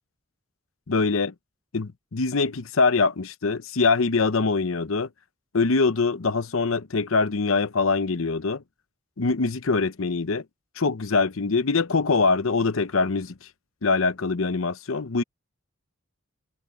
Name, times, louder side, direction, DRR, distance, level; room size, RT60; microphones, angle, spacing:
voice 1, 0.9-1.3 1.7-5.1 5.5-8.6 9.2-10.4 10.8-13.3 13.8-15.2, left 4 dB, 75° left, 0.8 m, -23 dB
head